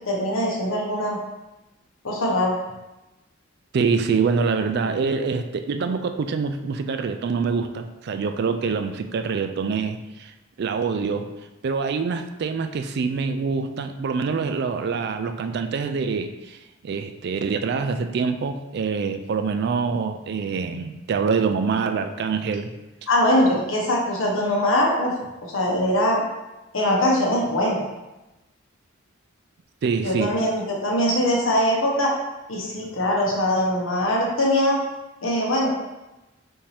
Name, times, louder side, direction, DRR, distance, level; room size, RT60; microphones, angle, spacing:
voice 1, 0.1-1.2 2.0-2.5 23.1-25.1 25.5-26.2 26.7-27.8 30.0-32.2 32.5-34.8 35.2-35.7, left 1 dB, 85° left, -2 dB, 1.1 m, -22 dB
voice 2, 3.7-10.3 10.6-11.3 11.6-16.6 16.8-22.7 29.8-30.4, right 5 dB, 55° right, 7 dB, 0.3 m, -25 dB
5.6 x 2.7 x 3.3 m, 1.0 s
head